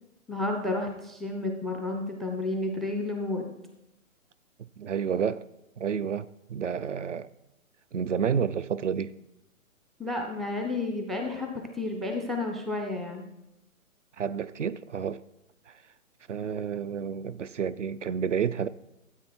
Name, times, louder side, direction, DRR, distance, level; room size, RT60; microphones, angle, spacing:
voice 1, 0.3-3.5 10.0-13.3, left 2 dB, ahead, 0.4 m, -31 dB
voice 2, 4.8-5.4 5.8-7.3 7.9-9.1 14.2-15.2 15.7-15.8 16.3-18.7, right 7 dB, 60° right, 0.5 m, -30 dB
13.0 x 8.0 x 4.5 m
hypercardioid pair, 175°, 43 cm